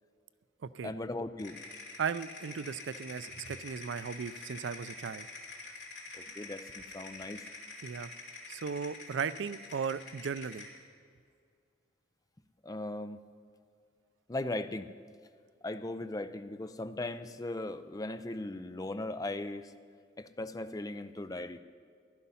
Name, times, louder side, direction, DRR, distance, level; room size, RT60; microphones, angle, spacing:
voice 1, 0.8-1.6 6.1-7.4 12.6-13.2 14.3-14.9 15.6-19.7 20.2-21.6, left 2 dB, 20° left, 11 dB, 0.4 m, -38 dB
sound 1, 1.4-10.8, left 3 dB, 75° left, 3.4 m, -46 dB
voice 2, 2.0-5.3 7.8-8.1 8.5-10.7, right 6 dB, 85° right, 16 dB, 0.4 m, -36 dB
15.0 x 11.5 x 5.6 m, 2.2 s
head